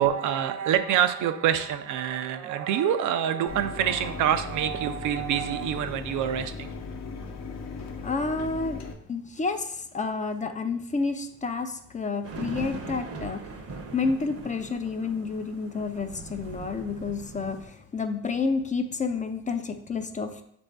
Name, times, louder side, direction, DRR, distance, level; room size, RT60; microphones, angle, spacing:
voice 1, 0.0-6.7, right 9 dB, 80° right, 9 dB, 0.5 m, -26 dB
Mechanisms, 3.5-8.9, left 4 dB, 60° left, 0.7 m, -38 dB
voice 2, 8.0-8.8 9.1-13.5 13.9-20.4, left 4 dB, 25° left, 7 dB, 0.4 m, -30 dB
sound 1, 12.2-17.7, right 3 dB, 50° right, 0.7 m, -40 dB
6.2 x 2.6 x 3.3 m, 0.69 s
cardioid pair, 90°, 30 cm